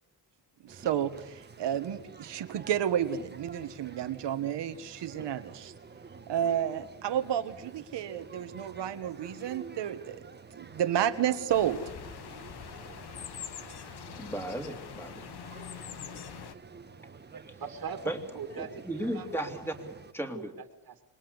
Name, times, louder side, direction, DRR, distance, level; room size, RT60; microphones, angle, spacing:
voice 1, 0.6-5.7 6.3-10.2 10.6-11.8, right 10 dB, 85° right, 9 dB, 1.7 m, -31 dB
sound 1, 0.7-20.1, right 5 dB, 25° right, 1.3 m, -49 dB
sound 2, 11.5-16.5, left 9 dB, 70° left, 1.4 m, -44 dB
voice 2, 14.2-15.2 18.1-20.5, right 1 dB, 5° left, 5 dB, 3.0 m, -36 dB
voice 3, 17.3-19.5 19.8-19.9 20.3-21.0, right 7 dB, 60° right, 4 dB, 2.3 m, -42 dB
26.0 x 22.0 x 8.1 m, 0.87 s
cardioid pair, 120°, 41 cm